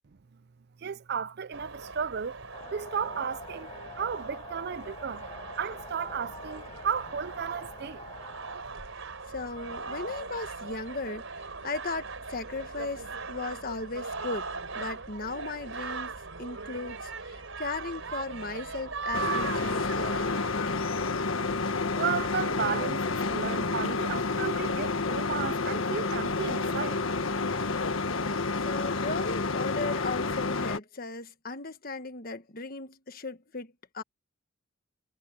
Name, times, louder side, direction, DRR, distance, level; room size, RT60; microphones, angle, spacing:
voice 1, 0.8-2.4 2.7-5.3 5.6-8.0 21.9-27.0, right 7 dB, 55° right, 0.5 m, -34 dB
sound 1, 1.5-20.5, right 4 dB, 80° right, 3.9 m, -39 dB
sound 2, 2.5-8.6, left 3 dB, 25° left, 6.6 m, -47 dB
voice 2, 9.3-14.5 14.7-16.1 16.4-20.8 28.6-34.0, left 3 dB, 45° left, 1.5 m, -37 dB
sound 3, 19.1-30.8, left 3 dB, 85° left, 1.5 m, -29 dB
head